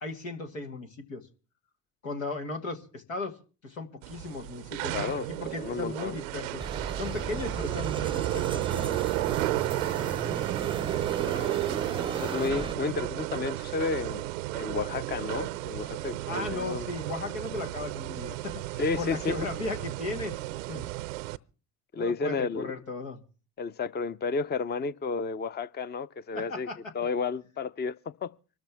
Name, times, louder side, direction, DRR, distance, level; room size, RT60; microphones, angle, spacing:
voice 1, 0.0-1.2 2.0-3.4 3.6-6.6 6.9-9.9 16.3-20.3 20.7-20.9 22.0-23.2 26.3-26.9, left 3 dB, 90° left, 1.7 m, -37 dB
sound 1, 4.0-21.4, right 18 dB, 80° right, 0.6 m, -33 dB
voice 2, 4.9-5.3 5.6-6.2 11.2-11.6 12.1-14.3 14.5-16.9 18.8-19.4 21.9-22.7 23.6-26.7 26.9-28.0 28.2-28.3, left 4 dB, 25° left, 0.7 m, -32 dB
sound 2, 6.6-12.7, right 4 dB, 15° right, 0.6 m, -36 dB
24.5 x 13.0 x 3.5 m
hypercardioid pair, 55°, 38 cm